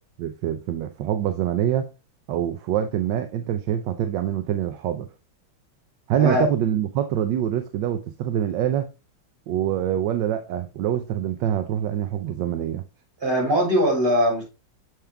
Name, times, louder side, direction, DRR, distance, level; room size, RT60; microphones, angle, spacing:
voice 1, 0.2-1.9 2.3-5.1 6.1-8.9 9.5-12.8, right 10 dB, 70° right, 1.1 m, -25 dB
voice 2, 13.2-14.4, equal, 25° right, 3.9 m, -20 dB
7.2 x 4.7 x 3.3 m
omnidirectional pair, 2.3 m